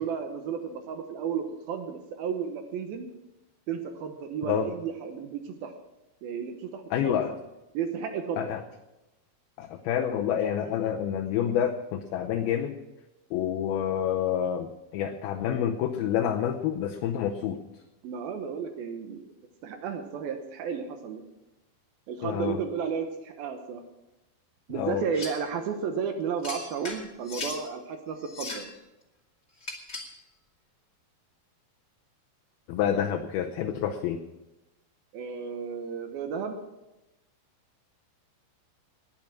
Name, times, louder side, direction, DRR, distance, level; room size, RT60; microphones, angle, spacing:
voice 1, 0.0-3.1 3.7-5.7 6.2-7.2 7.7-8.4 18.0-19.3 19.6-21.2 22.1-23.8 24.7-28.7 35.1-36.6, right 6 dB, 70° right, 6 dB, 2.6 m, -33 dB
voice 2, 6.9-7.3 8.4-8.6 9.6-12.8 13.3-17.6 22.2-22.6 24.7-25.0 32.7-34.2, left 9 dB, 75° left, 3 dB, 2.4 m, -28 dB
sound 1, 25.1-25.5 26.4-27.6 28.2-28.7 29.6-30.2, left 3 dB, 25° left, 1.5 m, -38 dB
20.0 x 8.5 x 6.0 m, 1.0 s
omnidirectional pair, 5.0 m